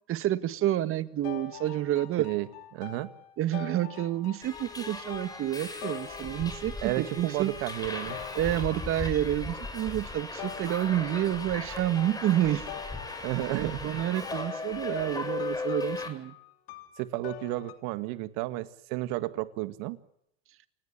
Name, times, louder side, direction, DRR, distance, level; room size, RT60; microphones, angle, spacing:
voice 1, 0.1-2.3 3.4-7.5 8.3-12.6 13.5-16.3, right 13 dB, 45° right, 14 dB, 1.8 m, -29 dB
sound 1, 1.2-7.0 7.7-9.3 10.4-17.7, left 11 dB, 75° left, 3.4 m, -45 dB
voice 2, 2.7-3.1 6.8-8.2 13.2-14.0 17.0-20.0, right 17 dB, 65° right, 13 dB, 2.1 m, -32 dB
Subway metro underground, 4.4-16.1, left 3 dB, 10° left, 5.7 m, -37 dB
29.0 x 18.5 x 7.3 m, 0.73 s
supercardioid pair, 105°, 31 cm